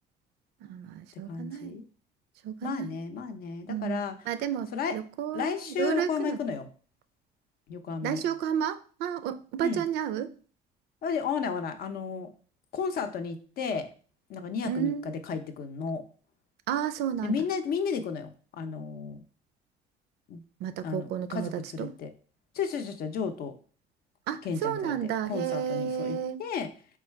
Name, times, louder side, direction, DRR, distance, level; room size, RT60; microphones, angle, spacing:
voice 1, 0.7-1.8 2.4-2.9 3.7-5.5 5.8-6.4 8.0-10.3 14.6-15.1 16.7-17.4 20.6-21.5 21.8-21.9 24.3-26.4, right 9 dB, 80° right, 13 dB, 0.4 m, -31 dB
voice 2, 1.3-1.8 2.6-4.3 4.7-5.0 5.3-6.7 7.7-8.2 9.6-9.8 11.0-12.3 12.7-13.9 14.3-16.0 17.2-19.2 20.3-20.4 20.8-22.1 22.5-23.6 24.4-26.7, left 6 dB, 65° left, 8 dB, 0.6 m, -33 dB
3.8 x 2.3 x 4.4 m, 0.41 s
cardioid pair, 110°, 17 cm